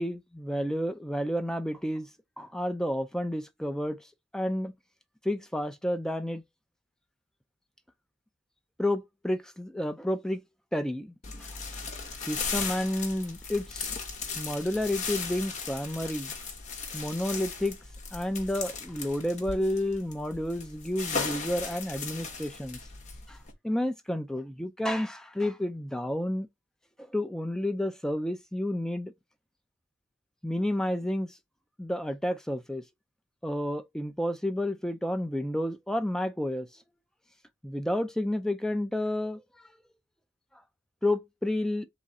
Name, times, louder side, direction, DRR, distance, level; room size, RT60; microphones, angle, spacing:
voice 1, 0.0-2.1 2.4-4.0 4.3-4.7 5.2-6.4 8.8-10.4 10.7-11.1 12.2-14.0 14.4-16.3 16.9-17.8 18.1-22.8 23.3-23.4 23.6-26.5 27.0-29.1 30.4-31.4 31.8-32.8 33.4-36.7 37.6-39.4 41.0-41.9, left 1 dB, 5° left, 0.3 m, -30 dB
sound 1, 11.2-23.5, left 5 dB, 35° left, 1.1 m, -37 dB
3.7 x 3.1 x 4.1 m
head